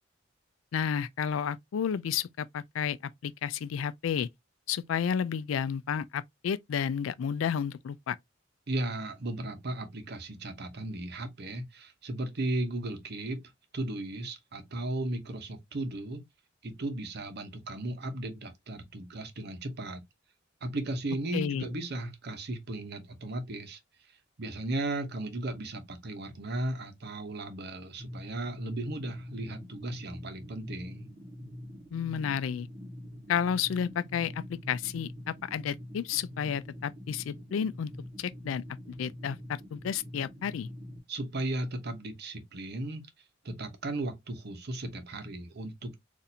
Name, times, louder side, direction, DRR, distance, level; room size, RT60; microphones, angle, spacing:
voice 1, 0.7-3.0 3.2-4.3 4.7-8.2 21.3-21.7 31.9-32.7 33.3-37.9 38.2-40.7, left 7 dB, 85° left, 0.3 m, -31 dB
voice 2, 8.7-13.4 13.7-16.2 16.6-20.0 20.6-23.8 24.1-31.1 41.1-43.1 43.4-46.0, right 1 dB, 55° right, 0.8 m, -36 dB
sound 1, 28.0-41.0, left 1 dB, 35° right, 1.0 m, -45 dB
4.1 x 2.5 x 2.6 m
head